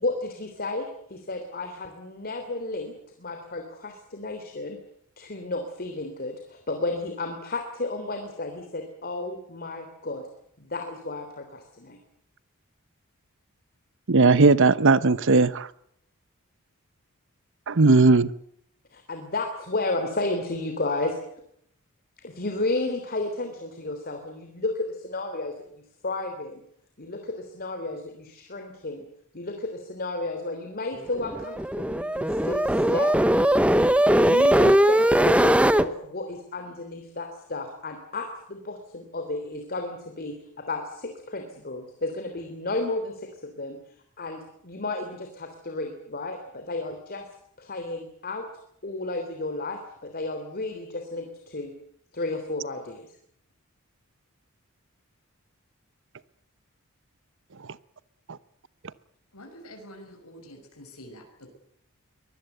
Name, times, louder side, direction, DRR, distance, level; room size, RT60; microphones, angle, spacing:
voice 1, 0.0-4.8 5.2-10.2 10.6-12.0 18.9-21.2 22.2-26.6 27.0-29.0 29.3-33.1 34.2-43.8 44.2-47.3 47.6-48.5 48.8-51.7 52.1-53.1, left 2 dB, 45° left, 5 dB, 3.2 m, -32 dB
voice 2, 14.1-15.7 17.7-18.3, right 3 dB, 60° right, 17 dB, 0.9 m, -17 dB
sound 1, 31.2-35.9, right 1 dB, 5° right, 0.9 m, -20 dB
voice 3, 59.3-61.2, equal, 85° left, 2 dB, 6.0 m, -46 dB
24.0 x 20.0 x 8.0 m, 0.70 s
head